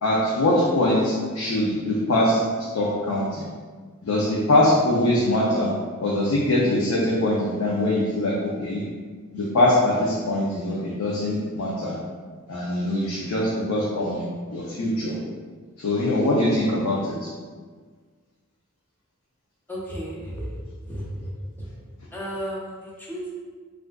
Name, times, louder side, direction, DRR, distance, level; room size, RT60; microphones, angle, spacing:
voice 1, 0.0-2.4 2.7-3.5 4.0-5.7 6.0-8.9 9.3-12.0 12.5-15.2 15.8-17.3, left 1 dB, 90° left, -5 dB, 0.5 m, -22 dB
voice 2, 19.7-20.5 20.9-21.3 21.6-21.7 22.1-23.3, equal, 10° left, -5 dB, 0.5 m, -33 dB
3.4 x 2.4 x 2.2 m, 1.5 s
head